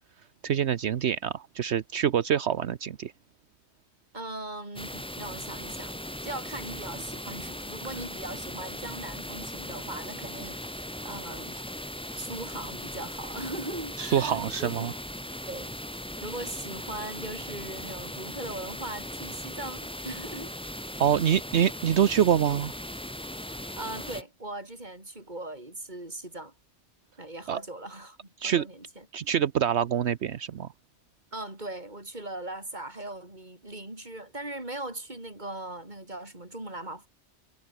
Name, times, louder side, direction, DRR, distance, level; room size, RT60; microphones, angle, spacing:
voice 1, 0.4-3.1 14.0-14.9 21.0-22.7 27.5-27.6 28.4-28.6 29.1-30.7, right 9 dB, 70° right, 1.1 m, -25 dB
voice 2, 4.1-11.6 12.1-14.9 15.5-15.7 16.0-20.6 23.8-26.5 27.2-29.1 31.3-37.1, right 1 dB, 40° right, 6.2 m, -39 dB
sound 1, 4.8-24.2, equal, 5° left, 1.5 m, -38 dB
omnidirectional pair, 1.2 m